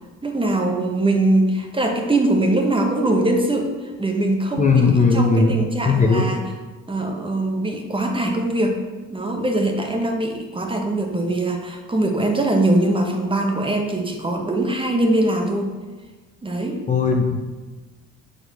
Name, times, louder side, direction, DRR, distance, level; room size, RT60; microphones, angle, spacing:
voice 1, 0.2-6.5 6.9-8.8 9.1-15.7 16.4-16.8, right 1 dB, 15° right, 3 dB, 0.9 m, -22 dB
voice 2, 4.6-5.5 5.9-6.3 16.9-17.4, left 4 dB, 25° left, 2 dB, 0.6 m, -17 dB
5.1 x 4.1 x 5.1 m, 1.3 s
cardioid pair, 90°, 30 cm